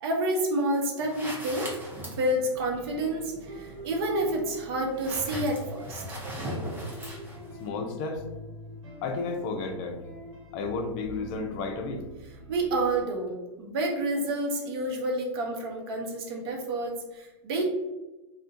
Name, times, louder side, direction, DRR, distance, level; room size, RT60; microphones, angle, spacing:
voice 1, 0.0-6.2 12.5-17.6, right 1 dB, 55° right, 1 dB, 0.7 m, -29 dB
sound 1, 1.0-7.7, right 1 dB, 10° right, 0.6 m, -39 dB
sound 2, 2.5-13.0, equal, 80° right, 1.1 m, -46 dB
voice 2, 7.6-8.2 9.0-10.0 10.5-12.1, left 4 dB, 40° left, 4 dB, 0.4 m, -32 dB
2.3 x 2.1 x 2.6 m, 1.1 s
hypercardioid pair, 125°, 15 cm